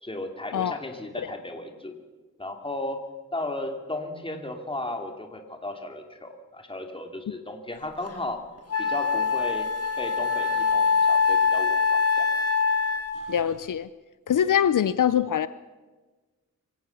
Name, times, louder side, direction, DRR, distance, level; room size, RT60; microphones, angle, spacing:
voice 1, 0.0-1.9 2.4-3.1 3.3-8.4 8.8-9.7 10.0-12.3, left 2 dB, 15° left, 4 dB, 2.5 m, -35 dB
Wind instrument woodwind instrument, 8.1-8.2 8.7-13.3, left 5 dB, 50° left, 2.4 m, -23 dB
voice 2, 13.3-13.9 14.3-15.5, left 9 dB, 75° left, 15 dB, 0.6 m, -23 dB
24.5 x 17.0 x 7.0 m, 1.3 s
wide cardioid pair, 120°, 32 cm